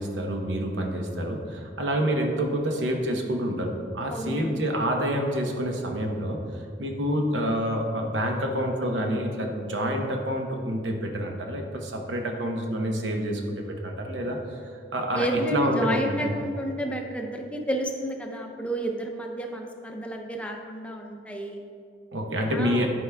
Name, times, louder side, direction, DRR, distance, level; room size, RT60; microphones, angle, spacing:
voice 1, 0.0-16.2 22.1-22.9, equal, 85° right, 2 dB, 0.9 m, -28 dB
voice 2, 4.1-4.6 14.2-14.3 15.1-21.6 22.5-22.9, right 1 dB, 5° left, 2 dB, 0.5 m, -31 dB
11.5 x 4.6 x 2.3 m, 2.3 s
head